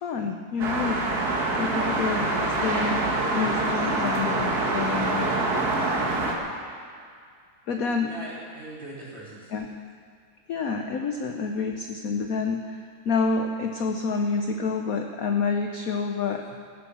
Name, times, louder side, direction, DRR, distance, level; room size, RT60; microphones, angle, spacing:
voice 1, 0.0-1.0 1.6-3.0 3.3-5.3 7.7-8.1 9.5-9.7 10.5-16.6, left 4 dB, 65° left, 4 dB, 0.9 m, -28 dB
sound 1, 0.6-6.3, right 2 dB, 50° right, 1.9 m, -25 dB
voice 2, 8.0-9.6, right 1 dB, 30° right, -7 dB, 4.0 m, -41 dB
15.5 x 10.0 x 7.0 m, 2.1 s
omnidirectional pair, 2.4 m